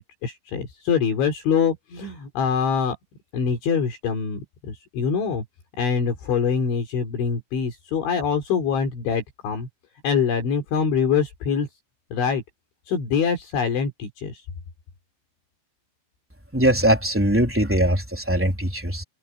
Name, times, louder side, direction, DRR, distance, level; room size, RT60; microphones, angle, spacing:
voice 1, 0.0-3.0 3.3-5.4 5.8-9.7 10.0-11.7 12.1-12.4 12.9-14.4, left 6 dB, 65° left, 6.2 m, -24 dB
voice 2, 16.5-19.0, right 1 dB, 5° right, 2.8 m, -21 dB
omnidirectional pair, 5.8 m